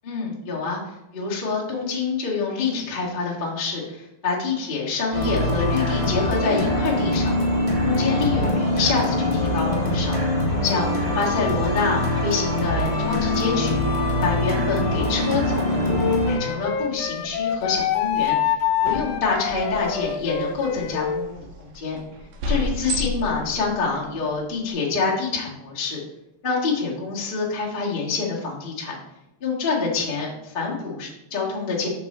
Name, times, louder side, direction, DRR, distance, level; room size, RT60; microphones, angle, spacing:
voice 1, 0.0-0.8 1.1-7.3 7.8-10.2 10.6-13.8 14.2-16.0 16.2-18.5 18.8-22.0 22.5-26.0 26.4-29.0 29.4-31.9, left 4 dB, 30° left, -5 dB, 0.9 m, -26 dB
sound 1, 5.1-16.4, left 1 dB, 25° right, 0.6 m, -23 dB
sound 2, 14.9-24.7, left 1 dB, 90° right, 2.7 m, -38 dB
Wind instrument woodwind instrument, 15.9-21.2, left 9 dB, 80° left, 2.0 m, -26 dB
6.2 x 5.9 x 4.2 m, 0.89 s
omnidirectional pair, 3.7 m